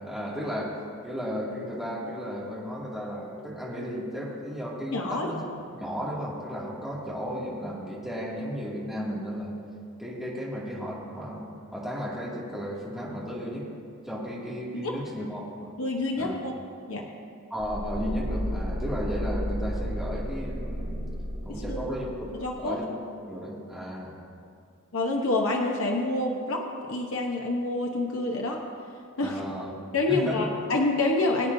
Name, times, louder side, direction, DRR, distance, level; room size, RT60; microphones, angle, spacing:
voice 1, 0.0-5.4 5.8-9.5 10.0-13.7 14.0-15.7 16.2-16.3 17.5-21.1 21.4-22.9 23.3-24.2 29.2-29.7 30.1-30.4, equal, ahead, -7 dB, 2.4 m, -34 dB
voice 2, 4.9-5.3 14.8-15.0 15.8-16.6 16.9-17.1 21.5-21.8 22.4-22.8 24.9-28.6 29.2-29.4 29.9-31.5, left 2 dB, 70° left, 0 dB, 1.0 m, -27 dB
sound 1, 17.6-22.5, equal, 80° right, 2.6 m, -33 dB
22.0 x 8.6 x 2.7 m, 2.4 s
head